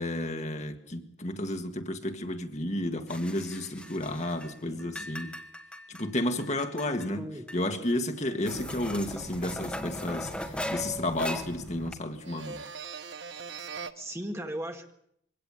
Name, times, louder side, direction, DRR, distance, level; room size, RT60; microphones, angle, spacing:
voice 1, 0.0-5.4 5.9-7.3 7.5-12.6, left 1 dB, 40° left, 1.8 m, -32 dB
sound 1, 3.1-4.5 4.8-7.1 7.5-7.6 7.9-8.0 8.5-11.9, left 1 dB, 5° left, 1.9 m, -38 dB
voice 2, 4.6-5.1 7.2-7.5 14.0-14.9, right 1 dB, 15° right, 1.8 m, -38 dB
sound 2, 8.2-11.7 12.0-13.9, right 5 dB, 90° right, 1.1 m, -44 dB
23.0 x 17.0 x 8.6 m
head